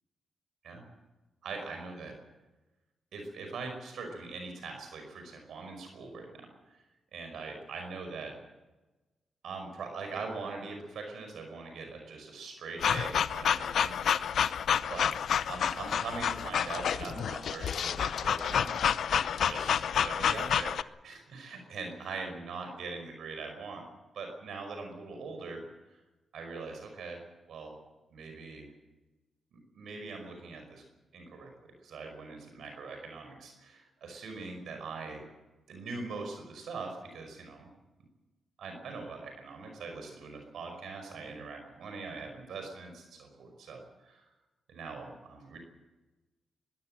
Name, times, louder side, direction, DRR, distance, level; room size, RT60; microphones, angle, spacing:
voice 1, 1.4-2.2 3.1-6.4 6.7-6.8 7.1-8.3 9.4-14.0 14.9-15.1 15.5-19.0 19.5-20.8 21.0-23.8 24.1-25.6 25.9-26.0 26.3-27.2 27.5-27.7 28.1-28.7 29.5-30.8 31.1-31.5 31.8-35.2 35.7-37.7 38.6-44.3 44.7-45.6, right 4 dB, 80° right, 4 dB, 5.3 m, -42 dB
sound 1, 12.8-20.8, left 8 dB, 70° left, 0.7 m, -29 dB
22.5 x 17.5 x 7.7 m, 1.1 s
cardioid pair, 115°, 0 cm